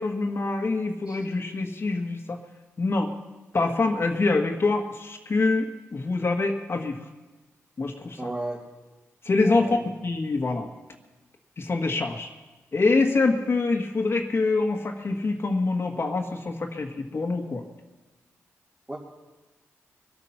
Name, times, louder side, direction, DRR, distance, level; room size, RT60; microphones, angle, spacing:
voice 1, 0.0-2.4 2.8-3.1 3.5-7.0 7.8-8.2 9.2-10.7 11.6-12.3 12.7-17.6, left 3 dB, 45° left, 3 dB, 1.7 m, -25 dB
voice 2, 8.2-8.6 9.4-9.8 18.9-19.0, right 2 dB, 20° right, -4 dB, 2.9 m, -33 dB
23.5 x 8.8 x 5.9 m, 1.2 s
cardioid pair, 60°, 6 cm